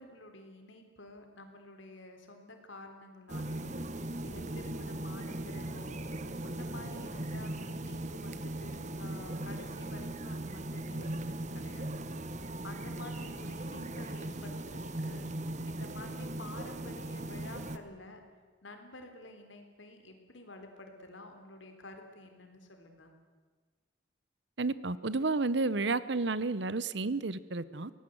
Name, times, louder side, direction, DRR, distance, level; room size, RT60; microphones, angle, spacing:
voice 1, 0.0-6.0 6.4-12.0 12.6-15.3 15.7-18.2 18.6-23.1, left 2 dB, 75° left, 5 dB, 3.7 m, -50 dB
sound 1, 3.3-17.8, right 1 dB, 35° right, 1.1 m, -39 dB
voice 2, 24.6-27.9, right 3 dB, 60° right, 17 dB, 0.9 m, -31 dB
24.0 x 18.5 x 7.9 m, 1.4 s
head